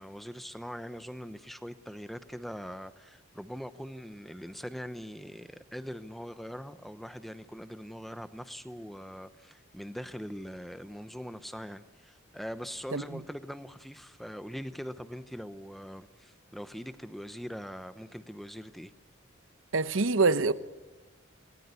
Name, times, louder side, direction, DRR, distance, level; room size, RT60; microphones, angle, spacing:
voice 1, 0.0-18.9, equal, ahead, 0.8 m, -42 dB
voice 2, 19.7-20.5, right 3 dB, 75° right, 0.9 m, -24 dB
27.5 x 20.0 x 8.4 m
head